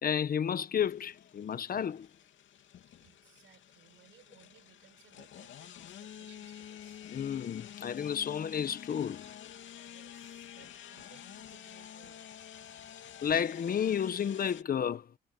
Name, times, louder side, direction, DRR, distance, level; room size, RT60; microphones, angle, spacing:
voice 1, 0.0-2.1 7.1-9.3 13.2-15.1, left 8 dB, 50° left, 1.0 m, -31 dB
sound 1, 0.8-14.6, left 10 dB, 70° left, 2.7 m, -49 dB
voice 2, 3.0-7.1 9.8-12.9, right 11 dB, 75° right, 7.4 m, -62 dB
cardioid pair, 90°, 20 cm